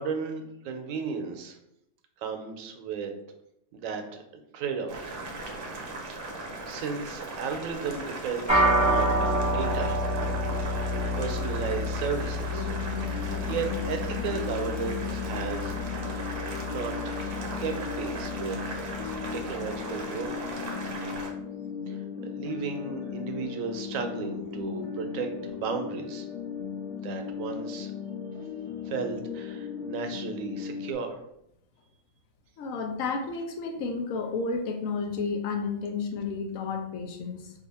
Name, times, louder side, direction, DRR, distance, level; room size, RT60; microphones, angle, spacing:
voice 1, 0.0-1.6 2.2-3.1 3.7-4.2 4.5-5.2 5.8-6.2 6.6-10.0 10.2-12.7 13.0-15.7 16.7-16.9 17.2-19.0 19.3-20.3 21.9-26.3 27.0-27.9 28.9-31.2, right 5 dB, 80° right, 6 dB, 1.0 m, -35 dB
Boiling, 4.9-21.3, right 2 dB, 55° right, 0.7 m, -38 dB
sound 1, 8.5-18.0, equal, 5° right, 0.8 m, -29 dB
sound 2, 12.5-30.9, left 7 dB, 55° left, 0.4 m, -37 dB
voice 2, 32.6-37.5, left 4 dB, 80° left, 4 dB, 1.0 m, -31 dB
2.7 x 2.5 x 4.0 m, 0.80 s
omnidirectional pair, 1.4 m